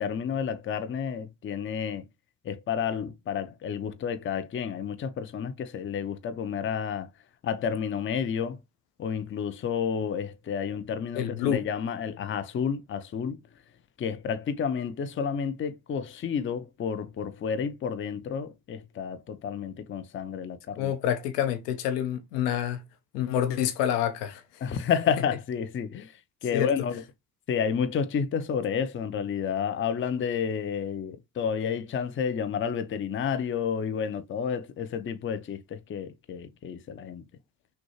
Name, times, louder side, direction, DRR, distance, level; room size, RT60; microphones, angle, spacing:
voice 1, 0.0-2.0 2.4-7.1 7.4-8.6 9.0-13.4 14.0-20.9 24.6-27.0 27.5-37.2, left 7 dB, 25° left, 0.6 m, -30 dB
voice 2, 11.1-11.6 20.8-22.8 23.1-24.8 26.5-26.7, left 10 dB, 70° left, 0.9 m, -28 dB
6.1 x 2.4 x 3.0 m
figure-of-eight pair, 50°, 50 cm